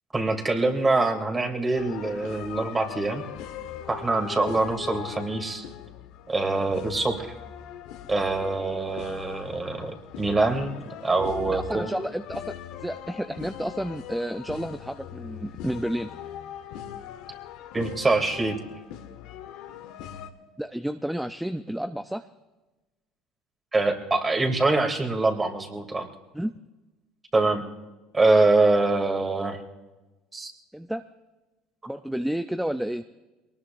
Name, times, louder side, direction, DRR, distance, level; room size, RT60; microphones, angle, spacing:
voice 1, 0.1-3.2 3.9-5.6 6.3-7.3 8.1-11.9 17.7-18.6 23.7-26.1 27.3-27.6 28.1-29.6 30.3-30.5, right 3 dB, 20° right, 4 dB, 2.7 m, -24 dB
sound 1, 1.7-20.3, left 10 dB, 70° left, 1.3 m, -40 dB
voice 2, 11.5-16.1 20.6-22.3 26.3-26.5 30.7-31.0 31.9-33.0, equal, 5° right, 9 dB, 0.6 m, -31 dB
22.5 x 19.5 x 2.6 m, 1.1 s
hypercardioid pair, 80°, 0 cm